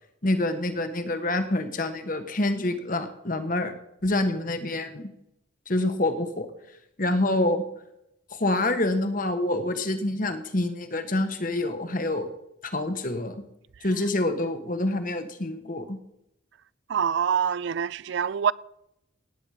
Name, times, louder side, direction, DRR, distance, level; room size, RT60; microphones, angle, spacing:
voice 1, 0.2-3.7 4.0-5.1 5.7-6.5 7.0-7.6 8.3-12.3 12.7-13.4 13.8-16.0, left 2 dB, 40° left, 1.3 m, -26 dB
voice 2, 16.9-18.5, right 7 dB, 65° right, 0.4 m, -25 dB
17.0 x 9.1 x 4.9 m
head